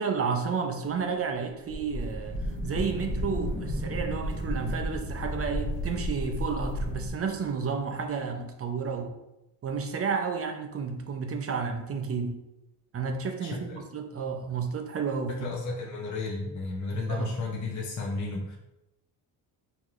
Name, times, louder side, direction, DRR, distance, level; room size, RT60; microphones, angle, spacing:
voice 1, 0.0-2.4 2.6-9.1 9.6-12.4 12.9-15.5 17.1-17.3, right 5 dB, 35° right, 5 dB, 0.5 m, -31 dB
sound 1, 0.8-7.1, equal, 80° left, 0.8 m, -34 dB
sound 2, 2.2-8.2, left 1 dB, 25° left, 1.3 m, -39 dB
voice 2, 13.4-13.8 15.4-18.6, left 3 dB, 40° left, -2 dB, 0.8 m, -33 dB
4.5 x 3.0 x 2.5 m, 0.92 s
cardioid pair, 95°, 43 cm